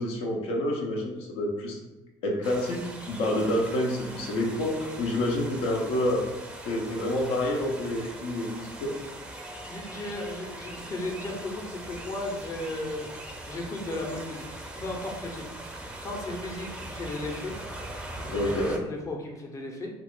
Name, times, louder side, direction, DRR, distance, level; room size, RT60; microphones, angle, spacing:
voice 1, 0.0-1.8 2.2-6.3 6.7-8.9 18.3-18.8, left 1 dB, 80° left, 0 dB, 0.5 m, -28 dB
sound 1, 2.4-18.8, right 1 dB, 10° right, 0.4 m, -41 dB
voice 2, 9.5-14.4 14.8-15.4 16.0-17.5 18.1-19.9, left 2 dB, 35° left, 0 dB, 0.6 m, -35 dB
2.3 x 2.3 x 3.6 m, 1.0 s
cardioid pair, 95°, 10 cm